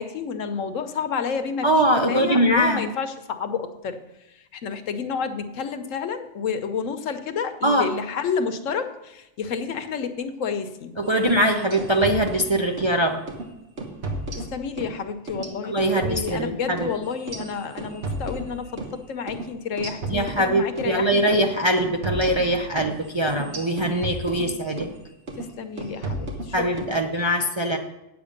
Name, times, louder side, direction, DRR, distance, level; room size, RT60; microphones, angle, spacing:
voice 1, 0.0-4.0 4.5-10.9 14.4-21.5 25.4-26.5 26.8-27.0, left 6 dB, 80° left, 9 dB, 1.2 m, -30 dB
voice 2, 1.6-2.8 7.6-7.9 11.0-13.2 15.6-16.9 20.1-24.9 26.5-27.8, right 1 dB, 35° right, 2 dB, 0.5 m, -22 dB
sound 1, 11.2-13.0 13.3-13.5 13.8-15.0 15.3-19.0 19.3-19.4 19.8-20.9 21.3-21.5 21.8-25.0 25.3-25.5 25.8-26.9, right 2 dB, 60° right, 1.5 m, -33 dB
8.8 x 8.0 x 5.1 m, 0.94 s
omnidirectional pair, 1.3 m